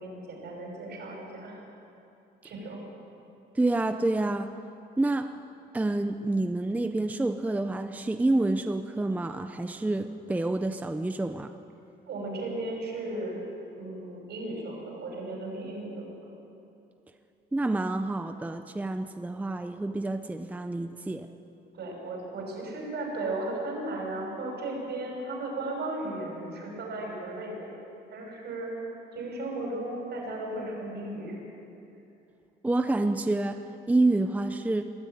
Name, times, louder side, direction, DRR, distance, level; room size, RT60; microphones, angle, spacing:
voice 1, 0.0-1.5 2.4-2.8 12.1-13.4 13.8-16.3 21.7-27.8 28.1-31.4, right 2 dB, 70° right, 0 dB, 6.3 m, -35 dB
voice 2, 3.6-4.5 5.0-5.3 5.7-11.5 17.5-21.3 32.6-33.6 33.9-34.9, right 2 dB, 10° right, 7 dB, 0.6 m, -28 dB
21.5 x 13.0 x 9.2 m, 2.8 s
cardioid pair, 155°, 18 cm